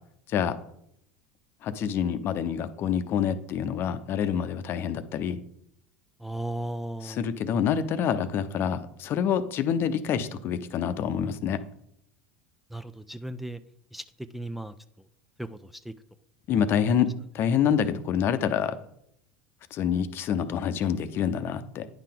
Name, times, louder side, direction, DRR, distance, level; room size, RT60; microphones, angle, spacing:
voice 1, 1.6-5.4 7.0-11.6 16.5-18.8 19.7-21.9, left 8 dB, 45° left, 11 dB, 0.7 m, -27 dB
voice 2, 6.2-7.2 12.7-13.6 13.9-14.0 14.3-14.7 15.4-15.6 15.9-16.0, right 1 dB, 5° right, 9 dB, 0.4 m, -35 dB
9.8 x 5.7 x 3.7 m, 0.74 s
hypercardioid pair, 80°, 5 cm